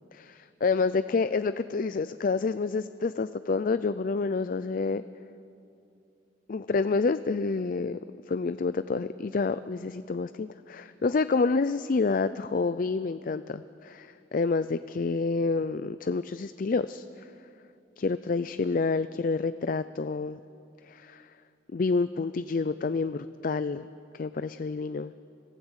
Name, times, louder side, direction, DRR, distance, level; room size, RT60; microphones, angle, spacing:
voice 1, 0.1-5.0 6.5-8.0 8.3-17.3 18.0-20.4 20.9-21.3 21.7-23.9 24.1-25.1, left 4 dB, 45° left, 13 dB, 0.4 m, -28 dB
25.5 x 16.0 x 8.1 m, 2.7 s
head